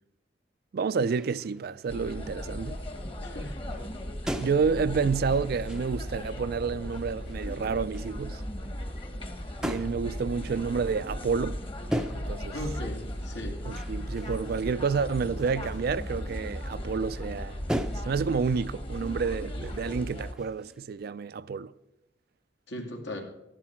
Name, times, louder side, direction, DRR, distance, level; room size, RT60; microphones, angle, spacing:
voice 1, 0.7-2.8 4.3-8.4 9.6-11.6 12.1-12.5 13.7-17.6 18.0-21.7, right 5 dB, 55° right, 0.4 m, -29 dB
sound 1, 1.0-2.0 2.3-2.8 3.4-3.5 3.7-6.6 6.9-7.5 7.9-8.1 9.6-10.1 11.9-12.5 12.8-17.2 17.7-18.3 18.7-20.8, equal, 5° right, 0.5 m, -39 dB
sound 2, 1.9-20.3, equal, 30° left, 1.2 m, -37 dB
voice 2, 3.2-3.6 12.5-13.6 22.7-23.2, left 1 dB, 75° left, 2.3 m, -37 dB
13.5 x 11.0 x 4.5 m
head